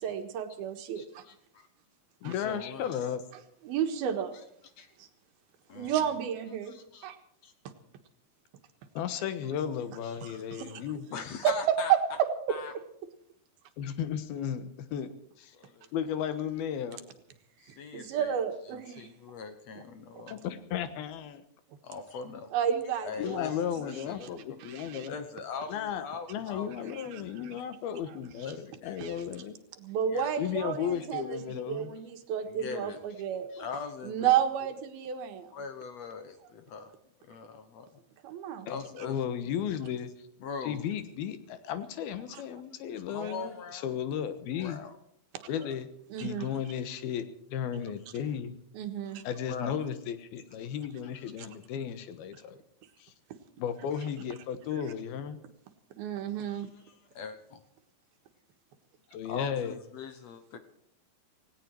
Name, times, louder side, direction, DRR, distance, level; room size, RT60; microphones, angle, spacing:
voice 1, 0.0-1.2 2.2-2.3 3.6-4.4 5.0-5.1 5.7-6.7 7.0-7.2 10.2-10.8 11.4-11.5 17.9-19.1 22.5-23.4 24.2-24.3 24.6-25.1 26.9-27.2 29.0-29.2 29.8-33.5 34.0-35.5 38.2-38.7 42.3-42.4 43.2-43.3 46.1-46.5 48.7-49.2 51.4-51.5 56.0-56.7, right 9 dB, 90° right, 7 dB, 3.4 m, -32 dB
voice 2, 1.0-1.7 2.2-3.1 4.3-4.4 4.8-4.9 5.7-6.0 6.6-7.1 7.4-7.5 10.0-10.4 11.1-11.9 12.5-12.7 15.5-15.9 17.6-18.4 18.7-20.5 21.8-22.5 23.0-26.9 27.2-28.0 28.4-29.0 30.1-30.3 30.6-31.1 32.4-33.2 33.5-34.3 35.5-36.9 37.2-37.9 38.7-39.2 39.7-39.8 40.4-40.8 43.1-44.0 44.6-44.9 45.6-45.8 49.5-49.8 51.0-51.2 53.9-54.1 56.4-57.6 59.2-60.6, left 5 dB, 60° left, 9 dB, 1.9 m, -42 dB
voice 3, 2.2-3.2 8.9-11.1 13.8-15.1 15.4-15.6 15.9-17.0 20.3-21.4 23.2-25.1 25.7-29.5 30.4-31.9 38.6-40.1 40.7-44.8 45.5-45.9 46.2-47.2 47.5-48.6 49.2-52.6 53.0-53.1 53.6-55.4 59.1-59.8, left 8 dB, 90° left, 11 dB, 3.2 m, -34 dB
18.0 x 17.5 x 4.6 m, 0.69 s
omnidirectional pair, 4.3 m